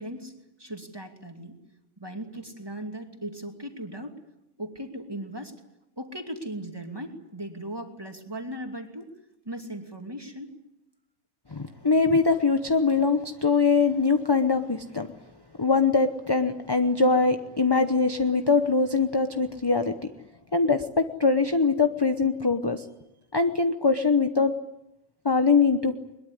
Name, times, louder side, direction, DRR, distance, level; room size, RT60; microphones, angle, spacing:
voice 1, 0.0-1.6 2.0-4.2 4.6-5.5 6.0-9.1 9.4-10.5, right 1 dB, 15° right, 4 dB, 2.6 m, -38 dB
voice 2, 11.5-15.1 15.6-19.9 20.5-22.8 23.3-24.5 25.2-25.9, left 4 dB, 20° left, 8 dB, 0.8 m, -22 dB
22.0 x 21.5 x 9.8 m, 0.90 s
omnidirectional pair, 1.5 m